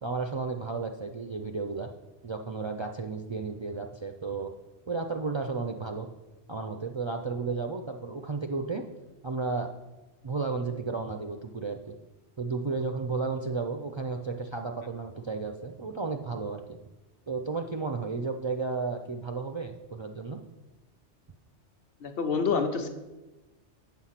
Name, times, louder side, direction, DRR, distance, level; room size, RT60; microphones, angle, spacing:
voice 1, 0.0-1.9 2.2-4.5 4.9-6.1 6.5-8.8 9.2-9.7 10.2-11.9 12.4-16.8 17.3-20.4, right 4 dB, 50° right, 4 dB, 0.3 m, -33 dB
voice 2, 22.0-22.9, left 5 dB, 55° left, 6 dB, 1.1 m, -27 dB
8.5 x 6.3 x 5.7 m, 1.1 s
omnidirectional pair, 1.2 m